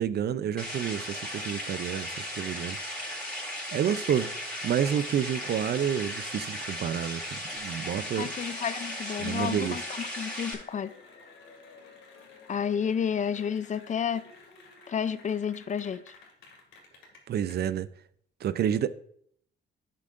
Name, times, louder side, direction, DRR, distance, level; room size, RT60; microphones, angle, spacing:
voice 1, 0.0-2.8 3.7-4.3 4.6-8.3 9.2-9.8 17.3-17.9 18.4-18.9, right 9 dB, 55° right, 0.5 m, -29 dB
sound 1, 0.6-10.5, left 1 dB, 5° left, 4.0 m, -36 dB
Cheering / Applause, 7.6-17.5, left 4 dB, 85° left, 2.2 m, -52 dB
voice 2, 8.1-10.9 12.5-14.3 14.9-16.0, left 7 dB, 40° left, 0.4 m, -31 dB
11.5 x 7.5 x 2.5 m
cardioid pair, 90°, 20 cm